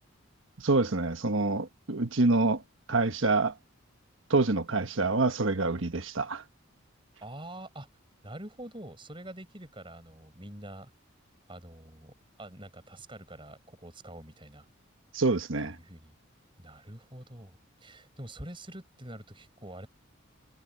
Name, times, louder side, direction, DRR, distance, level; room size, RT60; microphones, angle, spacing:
voice 1, 0.6-2.6 2.9-3.5 4.3-6.4 15.1-15.7, right 3 dB, 65° right, 1.3 m, -26 dB
voice 2, 7.2-7.9 8.2-10.9 11.5-14.7 15.6-16.2 16.6-19.9, right 1 dB, 25° right, 7.2 m, -46 dB
head